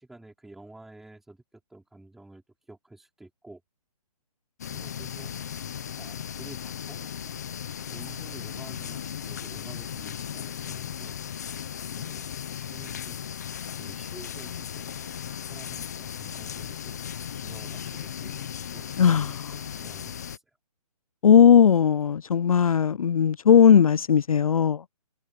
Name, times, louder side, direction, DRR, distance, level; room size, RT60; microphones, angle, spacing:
voice 1, 0.0-1.4 1.7-3.6 4.7-5.3 5.9-7.3 7.9-12.3 12.6-13.2 13.7-15.0 15.5-17.0 17.4-20.4, right 2 dB, ahead, 4.1 m, -50 dB
sound 1, 4.6-20.4, left 8 dB, 25° left, 1.0 m, -36 dB
voice 2, 19.0-19.3 21.2-24.8, left 8 dB, 65° left, 0.5 m, -18 dB
hypercardioid pair, 180°, 20 cm